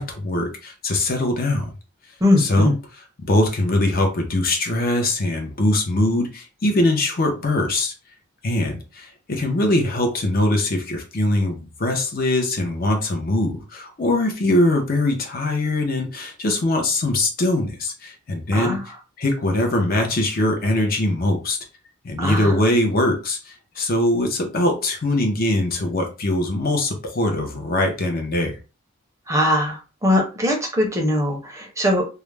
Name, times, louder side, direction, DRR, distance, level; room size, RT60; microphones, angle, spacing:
voice 1, 0.0-1.6 2.4-2.7 3.3-7.9 8.4-18.8 19.2-21.6 22.0-28.6, left 1 dB, 45° left, 0.6 m, -22 dB
voice 2, 2.2-2.7 18.5-18.8 22.2-22.5 29.3-32.1, left 1 dB, 15° right, 0.6 m, -21 dB
2.4 x 2.1 x 3.1 m
head